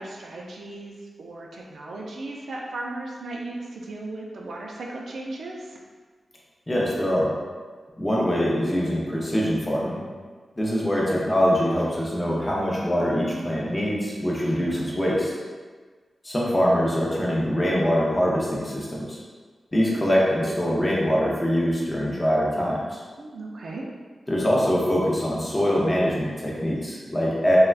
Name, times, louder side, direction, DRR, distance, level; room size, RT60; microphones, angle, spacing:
voice 1, 0.0-5.8 23.2-23.8, right 2 dB, 75° right, -2 dB, 0.4 m, -36 dB
voice 2, 6.7-7.3 8.0-10.0 10.6-15.3 16.2-19.2 19.7-23.0 24.3-27.6, equal, 15° left, -4 dB, 0.5 m, -23 dB
3.3 x 2.2 x 2.3 m, 1.5 s
wide cardioid pair, 155°, 0 cm